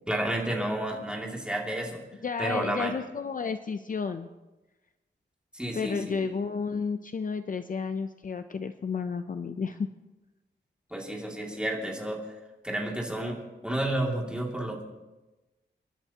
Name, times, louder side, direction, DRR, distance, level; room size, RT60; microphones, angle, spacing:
voice 1, 0.1-2.0 2.4-2.9 5.5-6.2 10.9-12.2 12.6-14.8, right 1 dB, 5° right, -1 dB, 2.4 m, -31 dB
voice 2, 2.2-4.3 5.7-9.8, left 5 dB, 45° left, 9 dB, 0.6 m, -32 dB
28.0 x 11.5 x 2.9 m, 1.1 s
wide cardioid pair, 140°, 20 cm